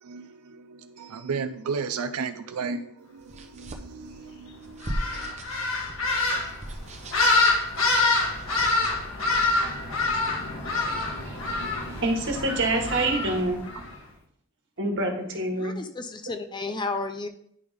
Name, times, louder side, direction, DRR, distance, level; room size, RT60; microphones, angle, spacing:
voice 1, 0.0-5.3 6.3-6.6 7.3-7.4 10.1-10.3 10.8-12.0, right 5 dB, 85° right, 0.5 m, -36 dB
sound 1, 3.2-9.5, right 1 dB, 30° right, 0.8 m, -39 dB
sound 2, 4.8-13.9, left 3 dB, 65° left, 1.8 m, -26 dB
voice 2, 12.0-13.6 14.8-15.8, right 2 dB, 55° right, 1.6 m, -26 dB
voice 3, 15.6-17.3, left 3 dB, 20° left, 0.5 m, -32 dB
9.7 x 3.5 x 5.0 m
head